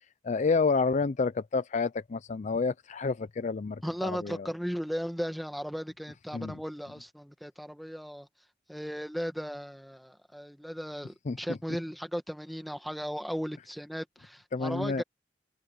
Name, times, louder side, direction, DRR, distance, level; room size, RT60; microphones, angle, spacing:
voice 1, 0.2-4.5 6.3-6.6 11.3-11.4 14.5-15.0, left 4 dB, 40° left, 0.4 m, -29 dB
voice 2, 3.8-8.3 8.7-15.0, equal, ahead, 1.8 m, -36 dB
head